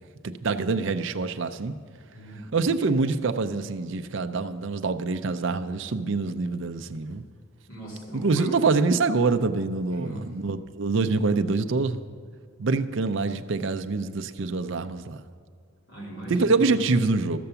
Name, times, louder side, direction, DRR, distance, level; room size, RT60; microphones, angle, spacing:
voice 1, 0.2-1.8 2.5-7.2 8.1-12.0 12.6-15.2 16.3-17.4, right 3 dB, 60° right, 8 dB, 0.5 m, -25 dB
voice 2, 2.1-2.7 7.7-8.5 9.9-10.2 15.9-16.9, right 1 dB, 65° left, -5 dB, 2.8 m, -38 dB
14.0 x 6.8 x 6.9 m, 2.1 s
head